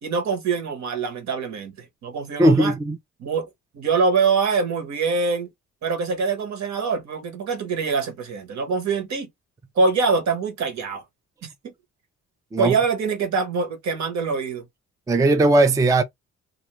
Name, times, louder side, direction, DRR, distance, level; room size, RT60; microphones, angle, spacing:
voice 1, 0.0-2.7 3.2-3.5 3.7-5.5 5.8-9.3 9.7-11.0 11.4-11.7 12.6-14.6, right 4 dB, 65° right, 1.2 m, -24 dB
voice 2, 2.4-3.0 12.5-12.7 15.1-16.0, right 2 dB, 10° right, 0.4 m, -17 dB
2.6 x 2.4 x 3.0 m
cardioid pair, 90°, 30 cm